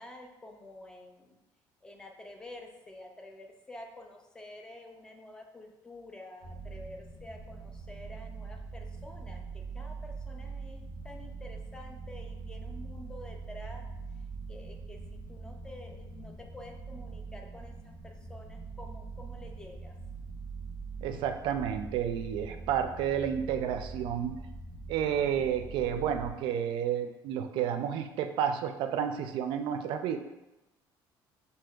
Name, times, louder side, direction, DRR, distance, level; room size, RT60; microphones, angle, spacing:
voice 1, 0.0-1.4 1.8-13.9 14.5-15.0 15.3-19.9, left 1 dB, 10° left, 2 dB, 0.4 m, -49 dB
sound 1, 6.4-26.3, right 4 dB, 70° left, 1.3 m, -43 dB
voice 2, 21.0-24.3 24.9-30.2, right 9 dB, 70° right, 7 dB, 0.4 m, -31 dB
6.0 x 2.7 x 2.3 m, 1.0 s
cardioid pair, 175°, 9 cm